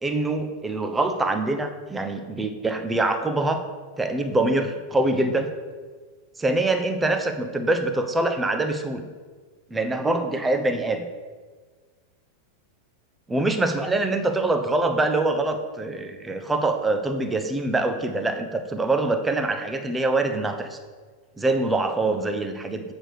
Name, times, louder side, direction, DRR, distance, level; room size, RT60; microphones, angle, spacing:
voice 1, 0.0-3.6 4.0-5.5 6.4-9.1 9.7-11.0 13.3-20.8 21.4-22.8, right 2 dB, 10° right, 6 dB, 0.8 m, -24 dB
7.4 x 5.0 x 6.6 m, 1.5 s
figure-of-eight pair, 90°, 0 cm